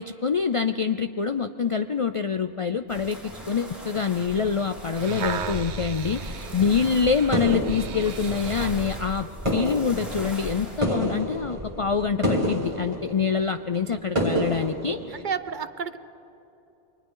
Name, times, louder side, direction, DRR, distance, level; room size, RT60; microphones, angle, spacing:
voice 1, 0.0-15.2, left 6 dB, 50° left, 9 dB, 0.4 m, -26 dB
sound 1, 2.9-10.8, equal, ahead, 4.5 m, -38 dB
sound 2, 5.0-8.8 9.5-9.6, right 6 dB, 80° right, 1.1 m, -35 dB
sound 3, 6.4-9.1 9.3-15.3, equal, 30° right, 2.3 m, -29 dB
voice 2, 15.1-16.0, right 6 dB, 50° right, 12 dB, 0.7 m, -31 dB
29.5 x 24.0 x 3.8 m, 2.9 s
omnidirectional pair, 1.1 m